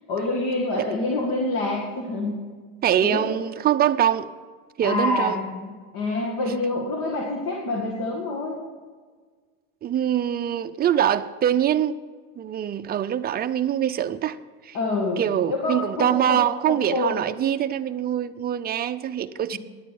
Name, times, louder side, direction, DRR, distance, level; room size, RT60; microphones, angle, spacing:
voice 1, 0.1-2.4 3.0-3.2 4.8-8.6 14.7-16.4 16.7-17.2 19.5-19.6, left 2 dB, 60° left, 2.1 m, -27 dB
voice 2, 2.8-4.3 4.8-5.4 9.8-12.0 12.4-14.4 14.6-14.8 15.2-19.6, right 10 dB, 25° right, 0.5 m, -23 dB
10.0 x 8.8 x 7.0 m
supercardioid pair, 120°, 41 cm